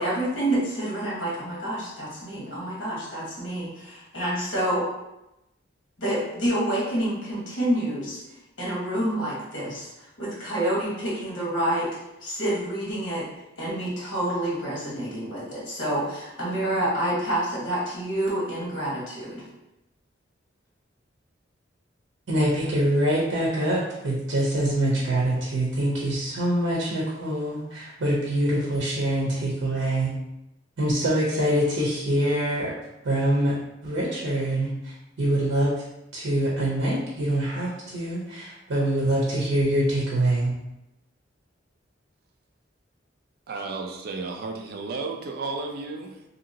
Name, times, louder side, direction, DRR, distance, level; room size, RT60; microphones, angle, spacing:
voice 1, 0.0-4.9 6.0-8.2 8.6-13.3 13.6-19.4, right 1 dB, 70° left, -6 dB, 1.3 m, -28 dB
voice 2, 22.3-30.1 30.8-32.7 33.0-33.5 33.8-35.7 36.1-40.5, right 1 dB, 90° right, -5 dB, 0.7 m, -24 dB
voice 3, 43.5-46.2, right 3 dB, 55° right, 3 dB, 0.4 m, -33 dB
2.8 x 2.6 x 2.7 m, 0.89 s
head